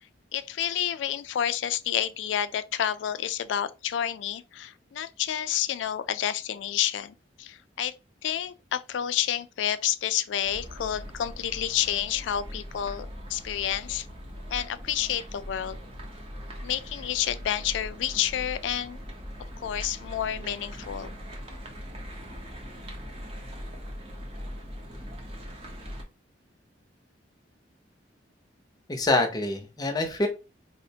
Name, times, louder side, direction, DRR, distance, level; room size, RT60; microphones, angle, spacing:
voice 1, 0.3-7.9 8.2-14.1 14.5-15.8 16.6-19.0 19.6-21.1, left 10 dB, 85° left, 0.3 m, -29 dB
sound 1, 10.4-26.0, equal, 35° right, 0.7 m, -41 dB
voice 2, 28.9-30.3, left 2 dB, 20° left, 0.7 m, -25 dB
4.1 x 2.1 x 2.7 m
head